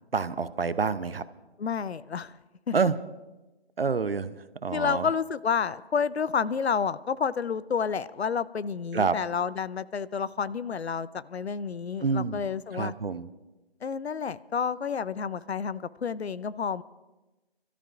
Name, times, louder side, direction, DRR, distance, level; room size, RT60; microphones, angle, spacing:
voice 1, 0.1-1.2 2.7-2.9 3.8-5.1 8.9-9.2 12.0-12.4 12.7-13.3, right 5 dB, 65° right, 14 dB, 0.8 m, -27 dB
voice 2, 1.6-2.3 2.7-2.8 4.7-12.9 13.8-16.8, left 6 dB, 85° left, 18 dB, 0.6 m, -30 dB
28.0 x 13.5 x 2.5 m, 1.1 s
figure-of-eight pair, 175°, 31 cm